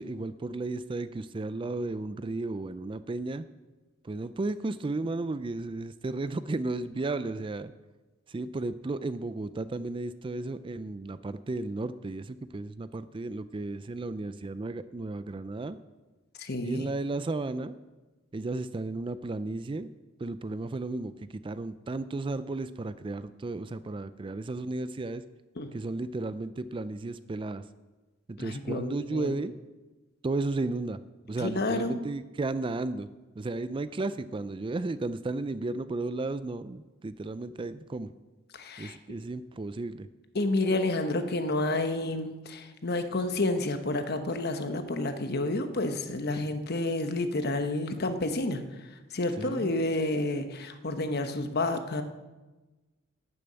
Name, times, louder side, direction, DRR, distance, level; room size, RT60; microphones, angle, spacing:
voice 1, 0.0-3.5 4.0-7.7 8.3-15.8 16.6-17.7 18.3-19.9 20.2-25.2 25.7-27.6 28.3-29.5 30.2-31.0 31.3-33.1 33.4-38.1 38.8-40.1 49.4-49.7, right 2 dB, 25° right, 14 dB, 0.4 m, -34 dB
voice 2, 16.4-16.9 25.6-25.7 28.4-29.3 31.4-32.0 38.5-39.0 40.3-48.6 49.1-52.0, left 2 dB, 50° left, 8 dB, 1.1 m, -30 dB
12.5 x 6.9 x 8.7 m, 1.2 s
head